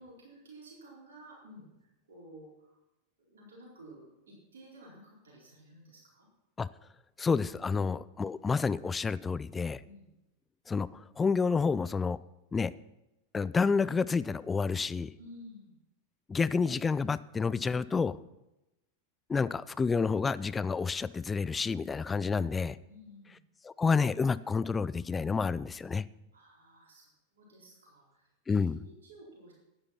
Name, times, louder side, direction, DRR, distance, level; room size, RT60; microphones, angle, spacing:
voice 1, 0.0-2.8 3.2-6.3 9.8-10.1 15.2-15.7 22.8-23.4 26.3-29.5, equal, 70° right, -4 dB, 4.3 m, -53 dB
voice 2, 7.2-9.8 10.7-12.2 12.5-12.7 13.3-15.1 16.3-18.2 19.3-22.7 23.6-26.0 28.5-28.8, left 5 dB, 15° left, 17 dB, 0.4 m, -29 dB
11.0 x 9.8 x 5.8 m, 0.95 s
figure-of-eight pair, 90°, 0 cm